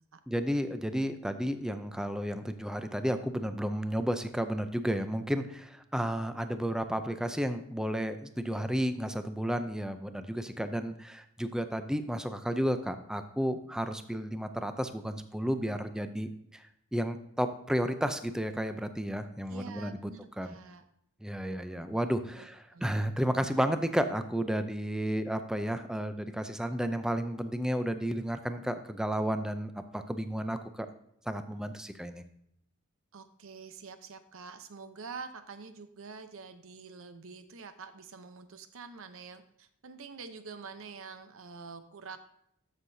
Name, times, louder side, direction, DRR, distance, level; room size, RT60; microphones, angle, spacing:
voice 1, 0.3-16.6 16.9-20.0 20.4-20.6 21.2-30.9 31.3-32.2, equal, 5° right, 9 dB, 0.5 m, -32 dB
voice 2, 19.5-20.8 22.2-22.9 33.1-42.2, right 5 dB, 65° right, 10 dB, 0.7 m, -46 dB
13.0 x 6.4 x 2.7 m, 0.74 s
head